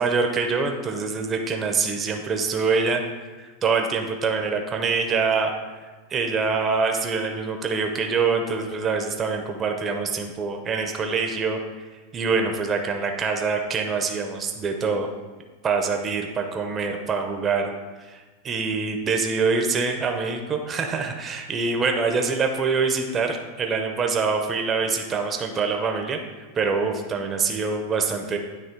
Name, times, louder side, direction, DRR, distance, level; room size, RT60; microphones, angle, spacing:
voice 1, 0.0-3.0 3.4-5.5 6.1-11.6 12.1-15.1 15.6-17.7 18.0-26.2 26.5-28.4, right 4 dB, 30° right, 4 dB, 0.7 m, -25 dB
9.1 x 3.1 x 4.5 m, 1.3 s
hypercardioid pair, 115°, 0 cm